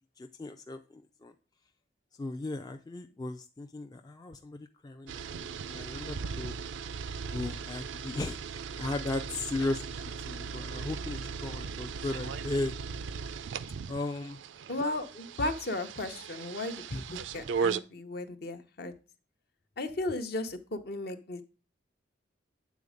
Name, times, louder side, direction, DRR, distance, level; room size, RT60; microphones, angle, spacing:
voice 1, 0.2-1.3 2.2-6.6 7.3-12.7 13.9-14.4 16.9-17.2, left 2 dB, 20° left, 6 dB, 0.3 m, -36 dB
sound 1, 5.1-17.8, right 5 dB, 80° right, 0.4 m, -37 dB
voice 2, 14.7-18.9 19.8-21.4, left 2 dB, 55° left, 8 dB, 0.8 m, -35 dB
8.3 x 4.1 x 5.0 m, 0.35 s
head